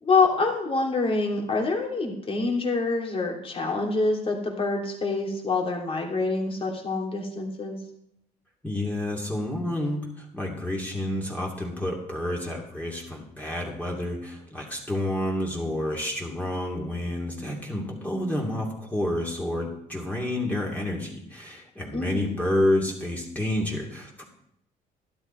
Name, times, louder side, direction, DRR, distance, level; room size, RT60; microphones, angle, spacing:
voice 1, 0.0-7.8 21.9-22.3, left 3 dB, 35° left, 1 dB, 2.8 m, -26 dB
voice 2, 8.6-24.2, left 1 dB, 10° left, -2 dB, 2.6 m, -29 dB
12.0 x 12.0 x 4.4 m, 0.77 s
cardioid pair, 110°, 17 cm